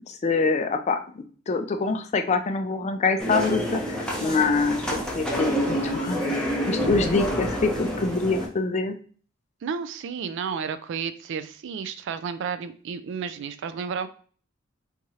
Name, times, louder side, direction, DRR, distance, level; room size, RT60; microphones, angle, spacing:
voice 1, 0.1-6.4 6.7-9.0, left 4 dB, 35° left, 7 dB, 0.4 m, -25 dB
sound 1, 3.2-8.5, equal, 5° left, 0.7 m, -28 dB
voice 2, 9.6-14.1, right 6 dB, 60° right, 12 dB, 0.3 m, -32 dB
3.6 x 3.0 x 2.8 m, 0.43 s
head